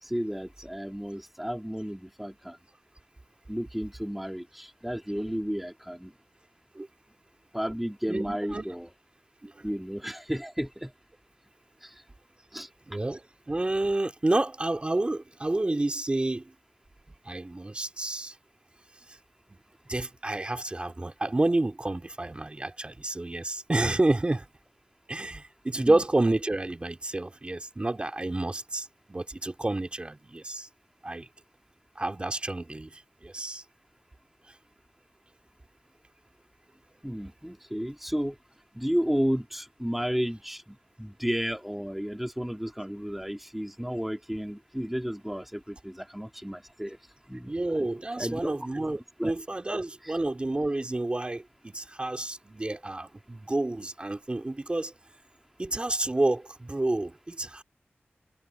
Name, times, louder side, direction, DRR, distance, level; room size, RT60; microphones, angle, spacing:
voice 1, 0.0-2.6 3.5-6.1 7.5-8.9 9.6-10.9 11.8-12.0 12.5-12.7 25.8-26.0 37.0-38.4 38.7-47.0 47.3-47.9 48.2-48.5 49.2-49.3 49.6-49.7 50.0-50.2, equal, 5° right, 2.3 m, -32 dB
voice 2, 8.1-8.6 9.4-9.7 12.9-16.5 17.2-18.4 19.1-19.2 19.5-19.6 19.9-24.5 25.1-30.7 31.0-31.3 32.0-33.6 34.5-34.6 47.5-54.9 55.6-57.6, right 2 dB, 25° right, 2.4 m, -29 dB
wide cardioid pair, 105°, 4 cm